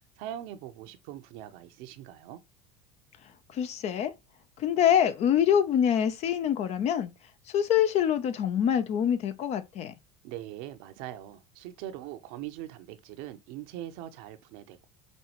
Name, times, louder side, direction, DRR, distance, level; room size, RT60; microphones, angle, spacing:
voice 1, 0.2-2.4 10.2-14.9, right 12 dB, 65° right, 0.7 m, -41 dB
voice 2, 3.5-4.1 4.6-7.1 7.5-9.9, left 9 dB, 50° left, 0.7 m, -25 dB
5.3 x 2.7 x 2.9 m
hypercardioid pair, 90°, 15 cm